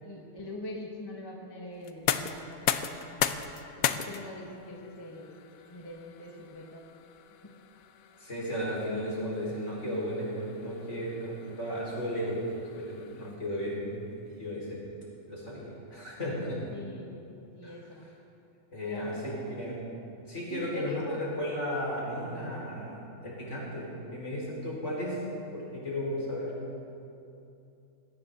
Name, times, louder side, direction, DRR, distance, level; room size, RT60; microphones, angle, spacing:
voice 1, 0.0-5.3 5.6-6.9 7.4-7.5 16.7-17.2 17.5-18.1 18.8-19.3 20.5-21.2, left 1 dB, 15° left, -1 dB, 1.3 m, -43 dB
sound 1, 1.8-13.6, left 9 dB, 75° left, 1.1 m, -37 dB
voice 2, 8.2-12.4 12.7-14.8 15.3-16.6 17.6-17.7 18.7-19.8 20.3-25.2 25.5-26.5, equal, 55° left, -6 dB, 5.2 m, -34 dB
19.5 x 17.0 x 3.9 m, 2.8 s
omnidirectional pair, 1.5 m